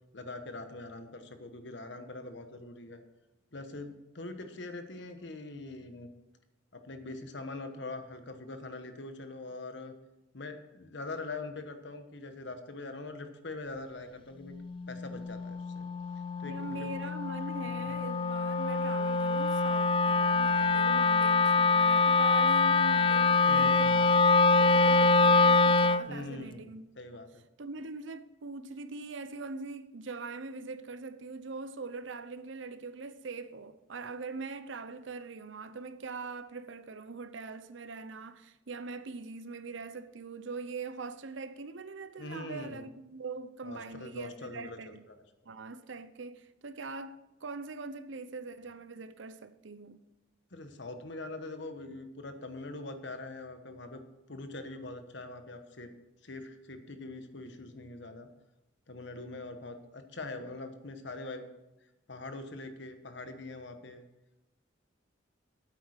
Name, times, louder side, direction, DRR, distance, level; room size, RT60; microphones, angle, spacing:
voice 1, 0.1-3.0 3.5-6.1 6.7-9.9 10.3-14.5 14.9-15.9 16.4-16.9 17.8-18.0 23.5-24.0 26.1-26.7 27.0-27.4 42.2-42.9 43.6-45.2 50.5-54.0 54.3-55.9 56.2-58.3 58.9-61.5 62.1-64.0, left 2 dB, 65° left, 1.2 m, -43 dB
Wind instrument woodwind instrument, 14.5-26.1, left 3 dB, 25° left, 0.3 m, -25 dB
voice 2, 16.4-24.2 24.5-26.8 27.6-45.0 45.5-50.0, right 3 dB, 75° right, 0.7 m, -42 dB
9.2 x 8.4 x 6.4 m
head